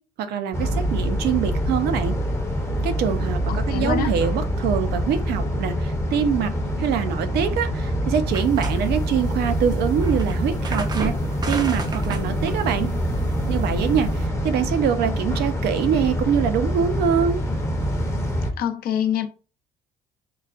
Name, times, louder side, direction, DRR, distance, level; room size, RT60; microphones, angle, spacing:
voice 1, 0.2-2.1 2.8-6.5 6.8-11.1 11.5-12.9 13.5-17.4, right 8 dB, 75° right, 0.5 m, -24 dB
sound 1, 0.5-18.5, equal, 15° left, 0.6 m, -25 dB
voice 2, 3.5-4.2 18.6-19.3, left 9 dB, 60° left, 0.5 m, -25 dB
sound 2, 8.3-14.3, right 3 dB, 25° right, 0.4 m, -35 dB
3.9 x 2.2 x 2.4 m
cardioid pair, 110°, 17 cm